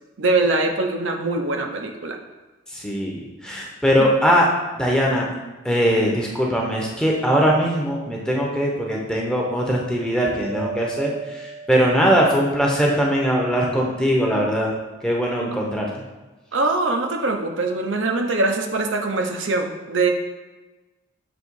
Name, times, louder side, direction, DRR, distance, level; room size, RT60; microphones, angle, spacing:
voice 1, 0.2-2.2 4.0-4.1 16.5-20.1, right 3 dB, 65° right, 3 dB, 0.7 m, -22 dB
voice 2, 2.7-4.5 4.8-5.3 5.6-11.1 11.4-14.7 15.0-15.9, equal, 5° left, -2 dB, 0.8 m, -20 dB
Mallet percussion, 10.4-12.5, right 4 dB, 30° right, 0.4 m, -35 dB
7.1 x 3.1 x 4.7 m, 1.2 s
head